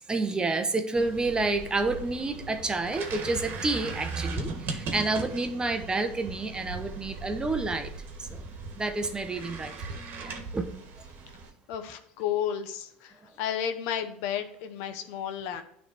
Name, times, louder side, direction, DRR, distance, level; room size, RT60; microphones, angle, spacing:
voice 1, 0.1-7.9 8.2-8.4 8.8-10.6, right 3 dB, 20° right, 8 dB, 0.8 m, -29 dB
sound 1, 1.0-11.5, right 4 dB, 50° right, 1.4 m, -38 dB
voice 2, 11.7-15.6, left 9 dB, 70° left, 7 dB, 0.8 m, -32 dB
9.7 x 3.3 x 4.4 m, 0.70 s
supercardioid pair, 95°, 4 cm